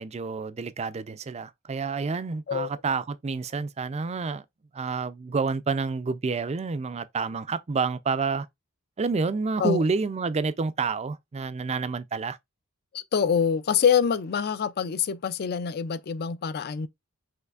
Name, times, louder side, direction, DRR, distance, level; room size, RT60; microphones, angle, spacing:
voice 1, 0.0-4.4 4.7-8.5 9.0-12.4, right 4 dB, 30° right, 0.4 m, -29 dB
voice 2, 12.9-16.9, left 7 dB, 45° left, 0.4 m, -25 dB
5.7 x 3.1 x 2.4 m
head